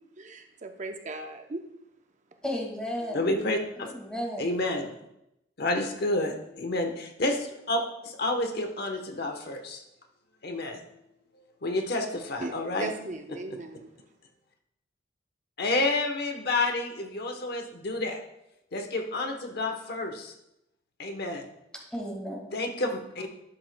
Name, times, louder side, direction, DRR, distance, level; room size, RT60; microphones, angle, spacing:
voice 1, 0.2-1.6 12.4-13.9, right 2 dB, 40° right, 5 dB, 0.6 m, -38 dB
voice 2, 2.4-3.2 3.8-4.5 21.9-22.5, equal, 5° left, -1 dB, 1.8 m, -33 dB
voice 3, 3.1-3.9 4.4-4.9 5.6-9.8 10.4-10.8 11.6-12.9 15.6-18.2 18.7-20.3 21.0-21.5 22.5-23.3, left 2 dB, 60° left, 5 dB, 1.0 m, -29 dB
11.5 x 7.8 x 2.2 m, 0.84 s
head